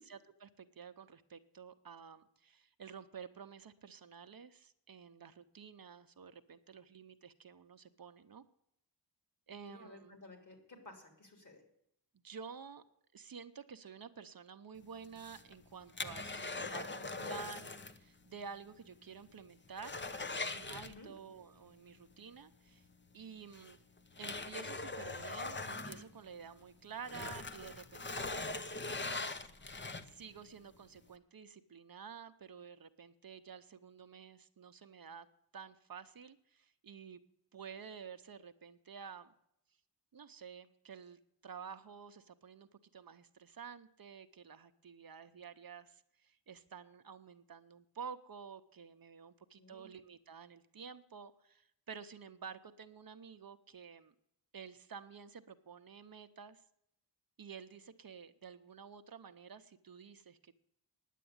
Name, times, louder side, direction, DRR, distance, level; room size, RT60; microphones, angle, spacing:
voice 1, 0.1-8.4 9.5-10.2 12.2-12.8 13.1-22.9 23.1-23.8 24.2-29.5 30.0-35.3 35.5-37.2 37.5-39.3 40.1-54.1 54.5-56.6 57.4-60.5, right 6 dB, 55° right, 9 dB, 0.8 m, -51 dB
voice 2, 9.7-11.6 20.9-21.1 49.6-49.9, left 2 dB, 45° left, 4 dB, 3.6 m, -55 dB
sound 1, 15.0-18.0 18.3-18.4 18.9-19.0 19.3-21.4 22.8-22.9 23.5-26.6 27.0-30.3 30.8-30.9, left 3 dB, 25° left, 0.8 m, -42 dB
10.0 x 8.3 x 9.5 m, 0.74 s
wide cardioid pair, 100°, 42 cm